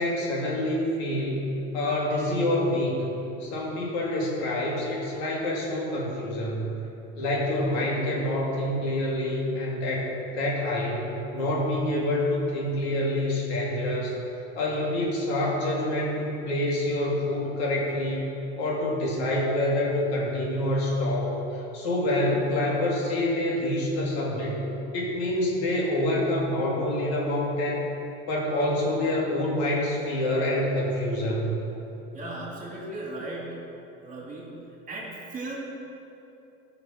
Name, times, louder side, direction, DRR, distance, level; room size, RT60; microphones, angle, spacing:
voice 1, 0.0-3.1 3.4-6.7 7.2-14.2 14.6-18.2 18.6-24.6 24.9-27.8 28.3-31.5, left 1 dB, 90° left, -3 dB, 2.6 m, -27 dB
voice 2, 32.1-33.5 34.0-34.5 34.9-35.5, right 2 dB, 25° right, -3 dB, 2.6 m, -36 dB
12.5 x 5.9 x 5.9 m, 2.9 s
supercardioid pair, 125°, 31 cm